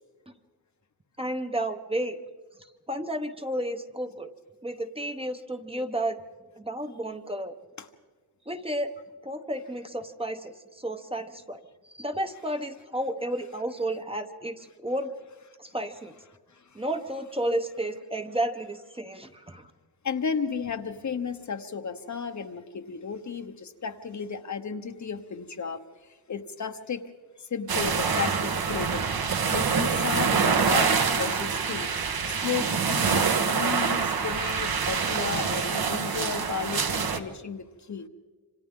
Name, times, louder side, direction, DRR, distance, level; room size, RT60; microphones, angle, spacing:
voice 1, 1.2-2.2 2.9-4.3 4.6-6.2 6.6-7.5 8.5-8.9 9.2-11.6 11.9-15.1 15.6-16.1 16.7-19.7, right 1 dB, 15° right, 6 dB, 0.9 m, -32 dB
voice 2, 20.0-25.8 26.3-27.1 27.4-29.1 29.5-31.9 32.3-38.1, left 6 dB, 45° left, 8 dB, 0.9 m, -33 dB
sound 1, 27.7-37.2, right 5 dB, 60° right, 1.3 m, -26 dB
27.0 x 26.0 x 3.7 m, 1.4 s
wide cardioid pair, 160°, 40 cm